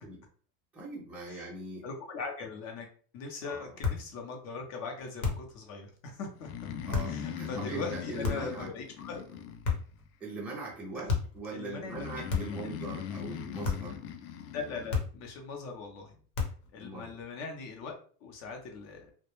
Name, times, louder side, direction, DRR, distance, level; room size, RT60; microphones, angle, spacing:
voice 1, 0.7-1.9 3.4-3.7 6.8-8.7 10.2-14.0 16.8-17.1, right 2 dB, 5° right, -4 dB, 0.4 m, -41 dB
voice 2, 1.8-2.9 3.1-6.5 7.0-9.2 11.0-11.1 11.5-12.9 14.5-16.2 16.7-18.0 18.2-19.1, left 4 dB, 35° left, 3 dB, 0.6 m, -40 dB
sound 1, 3.8-4.1 5.2-5.6 6.9-7.2 8.2-8.6 9.6-10.0 11.1-11.4 12.3-12.7 13.6-14.0 14.9-15.3 16.3-16.7, left 5 dB, 55° left, 0.9 m, -32 dB
Breathing, 6.4-10.1 11.9-15.0, left 8 dB, 85° left, 0.6 m, -40 dB
2.2 x 2.1 x 2.9 m, 0.44 s
supercardioid pair, 140°, 45 cm